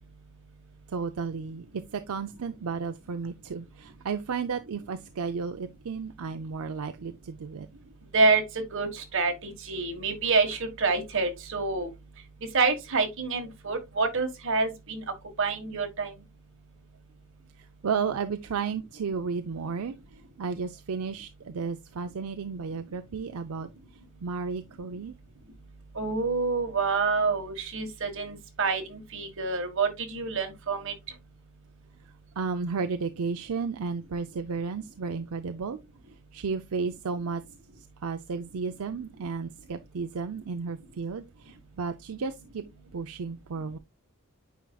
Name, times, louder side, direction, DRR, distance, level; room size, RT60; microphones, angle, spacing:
voice 1, 0.9-7.7 17.6-20.0 20.4-23.7 24.2-25.1 32.4-35.8 36.3-37.4 37.8-42.6 42.9-43.8, right 5 dB, 80° right, 0.5 m, -33 dB
voice 2, 8.1-11.9 12.5-15.0 15.4-16.1 25.9-30.9, right 4 dB, 60° right, 1.6 m, -27 dB
9.1 x 4.8 x 2.3 m
head